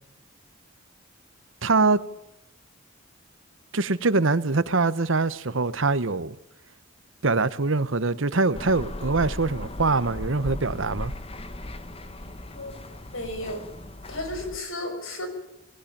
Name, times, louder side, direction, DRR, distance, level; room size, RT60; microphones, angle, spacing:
voice 1, 1.6-2.0 3.7-6.4 7.2-11.1, right 3 dB, 65° right, 1.1 m, -23 dB
sound 1, 8.5-14.6, left 1 dB, 30° left, 1.4 m, -37 dB
voice 2, 13.1-13.6 14.1-15.3, left 1 dB, 75° left, 5.8 m, -33 dB
20.5 x 17.5 x 8.8 m
head